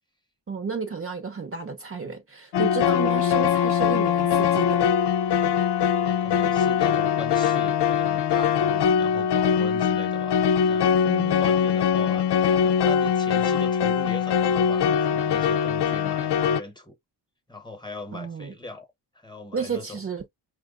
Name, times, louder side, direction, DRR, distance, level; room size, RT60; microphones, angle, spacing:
voice 1, 0.5-4.8 11.0-11.5 18.1-18.5 19.5-20.3, right 5 dB, 35° right, 0.8 m, -32 dB
sound 1, 2.5-16.6, left 8 dB, 75° left, 0.6 m, -22 dB
voice 2, 5.8-17.0 17.5-18.9 19.1-20.0, left 1 dB, 10° left, 1.0 m, -40 dB
5.8 x 2.2 x 3.7 m
wide cardioid pair, 175°, 41 cm